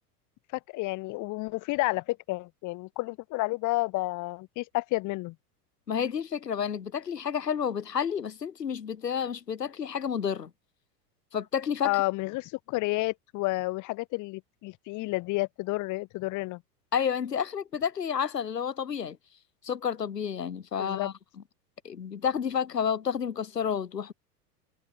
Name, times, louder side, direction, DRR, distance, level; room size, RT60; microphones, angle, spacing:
voice 1, 0.5-5.3 11.8-16.6 20.8-21.1, left 21 dB, 40° left, 1.0 m, -30 dB
voice 2, 5.9-10.5 11.3-12.0 16.9-19.2 19.6-21.1 21.8-24.1, left 7 dB, 90° left, 1.0 m, -30 dB
figure-of-eight pair, 85°, 47 cm